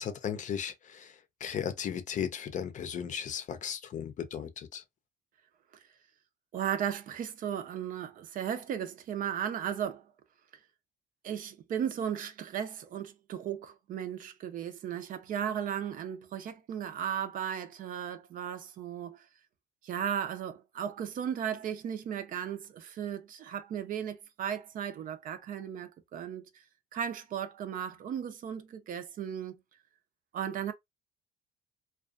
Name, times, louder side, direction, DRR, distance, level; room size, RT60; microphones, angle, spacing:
voice 1, 0.0-4.8, left 8 dB, 45° left, 0.5 m, -36 dB
voice 2, 6.5-10.1 11.2-19.2 19.8-26.5 26.9-29.5 30.3-30.7, right 9 dB, 55° right, 0.5 m, -36 dB
2.5 x 2.3 x 2.4 m
cardioid pair, 110°, 17 cm